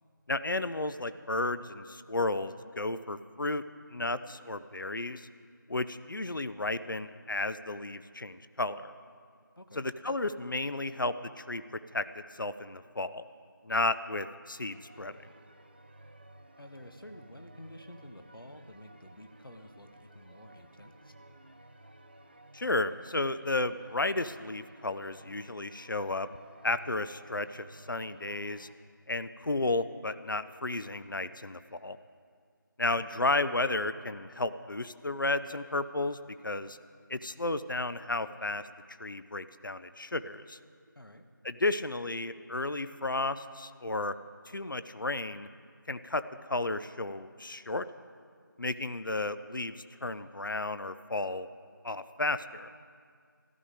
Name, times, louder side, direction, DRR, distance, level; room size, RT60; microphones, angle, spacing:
voice 1, 0.3-3.6 3.9-5.3 5.7-8.9 9.8-11.6 11.9-12.0 12.3-13.2 13.6-15.2 22.5-26.3 26.6-28.7 29.1-32.0 32.8-36.2 36.4-36.8 37.1-38.6 39.0-40.6 41.4-44.1 44.5-45.5 45.9-46.2 46.5-47.8 48.6-49.7 50.0-51.5 51.8-52.7, left 2 dB, 70° left, 13 dB, 0.6 m, -33 dB
voice 2, 9.6-9.9 16.6-21.1 33.0-33.2 40.9-41.3, left 1 dB, 90° left, 6 dB, 1.3 m, -50 dB
sound 1, 14.7-28.7, right 1 dB, 30° right, 0.5 m, -55 dB
13.5 x 13.0 x 5.0 m, 2.1 s
figure-of-eight pair, 165°, 11 cm